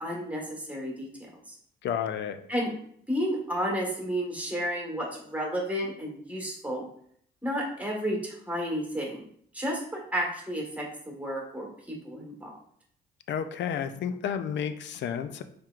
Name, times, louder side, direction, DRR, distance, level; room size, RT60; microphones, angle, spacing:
voice 1, 0.0-1.5 2.5-2.7 3.1-6.8 7.4-9.2 9.5-12.5, equal, 5° right, -2 dB, 1.4 m, -32 dB
voice 2, 1.8-2.4 13.3-15.4, left 8 dB, 65° left, 9 dB, 0.4 m, -31 dB
4.5 x 3.4 x 2.4 m, 0.65 s
cardioid pair, 90°, 20 cm